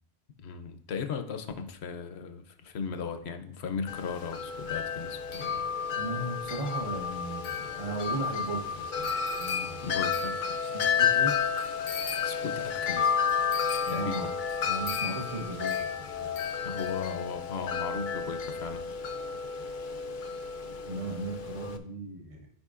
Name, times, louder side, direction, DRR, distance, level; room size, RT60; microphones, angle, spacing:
voice 1, 0.4-5.7 9.8-10.4 12.3-13.1 13.9-14.3 16.6-18.9, left 5 dB, 75° left, 8 dB, 1.0 m, -37 dB
Wind chime, 3.9-21.8, left 6 dB, 55° left, 0.7 m, -31 dB
voice 2, 5.9-9.1 9.3-9.9 10.7-11.4 13.9-14.3 14.6-16.4 20.9-22.5, right 2 dB, 35° right, 0 dB, 1.0 m, -36 dB
12.5 x 5.1 x 2.4 m, 0.64 s
omnidirectional pair, 1.1 m